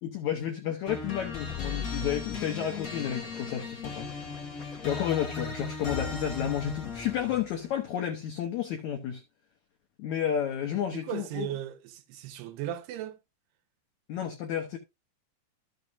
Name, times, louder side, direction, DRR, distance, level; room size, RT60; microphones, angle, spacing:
voice 1, 0.0-4.1 4.6-9.2 10.0-11.5 14.1-14.8, left 9 dB, 90° left, 1.6 m, -31 dB
sound 1, 0.9-7.6, left 5 dB, 55° left, 0.9 m, -37 dB
voice 2, 10.9-13.2, right 12 dB, 85° right, 3.1 m, -36 dB
13.5 x 6.6 x 2.5 m
omnidirectional pair, 4.7 m